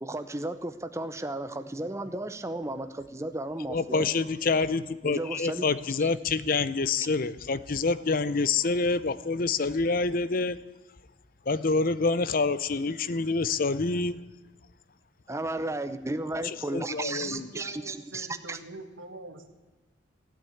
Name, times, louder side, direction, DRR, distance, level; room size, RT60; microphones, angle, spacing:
voice 1, 0.0-4.1 5.0-5.7 6.0-6.1 15.3-18.6, right 2 dB, 15° right, 10 dB, 0.7 m, -34 dB
voice 2, 3.7-10.6 11.5-14.2 16.4-17.5, left 4 dB, 45° left, 16 dB, 0.6 m, -27 dB
voice 3, 16.8-19.5, right 2 dB, 90° right, 6 dB, 1.9 m, -44 dB
16.0 x 9.0 x 8.5 m, 1.2 s
head